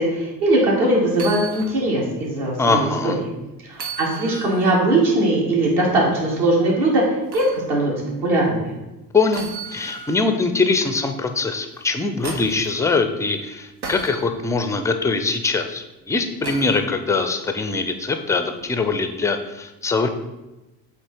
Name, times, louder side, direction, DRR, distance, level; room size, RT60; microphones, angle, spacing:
voice 1, 0.0-3.1 3.6-7.9 8.2-8.7, right 1 dB, 60° right, -3 dB, 2.2 m, -20 dB
sound 1, 1.1-1.8 2.2-2.3 3.7-4.7 7.3-7.6 9.3-10.3 11.7-12.7 13.8-14.2 16.4-16.8 18.6-18.7, right 4 dB, 85° right, 0.8 m, -34 dB
voice 2, 2.6-3.2 9.1-20.1, left 4 dB, 5° left, 7 dB, 0.3 m, -22 dB
8.0 x 3.0 x 4.4 m, 1.0 s
figure-of-eight pair, 60°, 49 cm